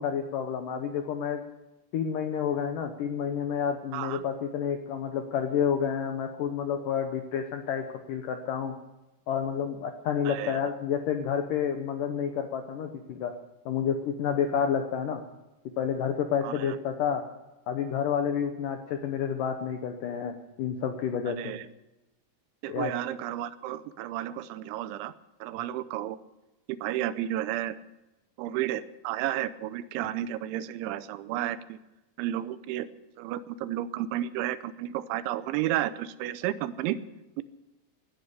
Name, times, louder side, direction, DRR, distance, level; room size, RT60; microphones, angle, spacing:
voice 1, 0.0-1.4 1.9-8.8 9.3-13.3 13.7-15.2 15.8-17.2 17.7-21.6 22.7-22.9, left 8 dB, 85° left, 6 dB, 1.8 m, -29 dB
voice 2, 3.9-4.2 10.3-10.6 16.4-16.8 21.3-21.7 22.6-25.1 25.4-26.2 26.7-27.8 28.4-31.8 32.2-32.9 33.2-37.0 37.4-37.5, right 13 dB, 90° right, 14 dB, 3.1 m, -32 dB
18.0 x 11.0 x 6.7 m, 0.99 s
omnidirectional pair, 5.3 m